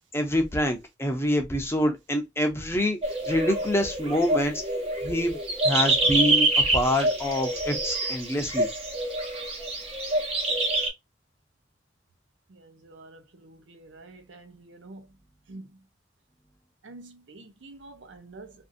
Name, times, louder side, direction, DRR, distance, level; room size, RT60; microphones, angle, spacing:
voice 1, 0.1-3.0 3.3-4.6 5.0-5.4 5.6-6.5 6.7-8.7, left 1 dB, 15° left, 0.6 m, -26 dB
sound 1, 3.0-10.9, right 2 dB, 30° right, 0.7 m, -26 dB
voice 2, 12.9-13.2 13.7-15.0 15.5-15.6 16.9-18.5, right 2 dB, 85° right, 0.7 m, -46 dB
2.6 x 2.6 x 2.4 m
head